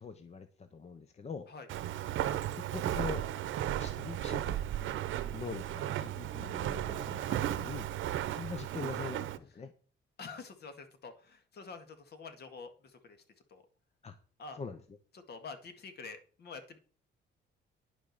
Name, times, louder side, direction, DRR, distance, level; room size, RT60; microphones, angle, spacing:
voice 1, 0.0-1.5 2.5-3.3 3.8-4.7 5.3-7.9 8.3-9.7 14.0-14.2 14.5-14.8, left 5 dB, 35° left, 10 dB, 0.9 m, -43 dB
Walk footsteps, 1.7-9.4, right 12 dB, 80° right, 0.9 m, -35 dB
voice 2, 10.2-13.2 13.5-13.6 14.4-14.6 15.1-16.8, left 4 dB, 55° left, 8 dB, 2.0 m, -47 dB
10.0 x 6.1 x 6.6 m, 0.40 s
cardioid pair, 120°, 20 cm